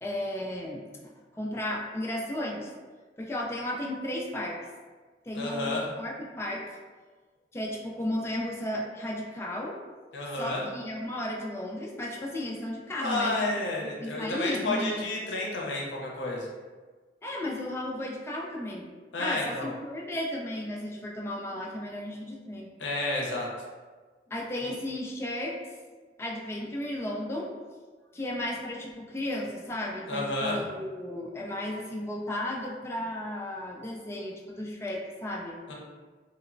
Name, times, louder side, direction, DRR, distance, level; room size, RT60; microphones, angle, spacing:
voice 1, 0.0-0.9 1.3-2.7 3.2-4.6 5.3-6.7 7.5-9.8 10.3-13.6 14.0-15.1 17.2-18.9 19.2-22.7 24.3-25.6 26.2-27.5 28.1-35.6, left 1 dB, 15° left, -2 dB, 0.3 m, -34 dB
voice 2, 5.3-5.9 10.1-10.6 13.0-16.5 19.1-19.7 22.8-23.5 24.6-24.7 30.1-30.6 35.7-35.8, left 2 dB, 90° left, -2 dB, 0.5 m, -31 dB
3.0 x 2.0 x 2.4 m, 1.4 s
head